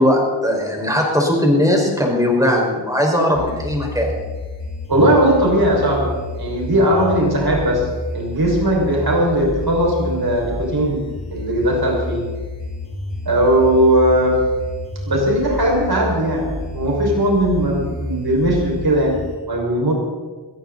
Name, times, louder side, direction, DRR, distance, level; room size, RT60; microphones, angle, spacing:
voice 1, 0.0-4.1, left 1 dB, 10° right, -1 dB, 5.5 m, -18 dB
sound 1, 3.3-19.3, left 2 dB, 75° left, 5.4 m, -30 dB
voice 2, 4.9-12.3 13.3-14.4 15.1-19.2 19.5-19.9, right 1 dB, 55° right, -1 dB, 5.9 m, -18 dB
22.0 x 15.0 x 4.2 m, 1.4 s
cardioid pair, 55°, 44 cm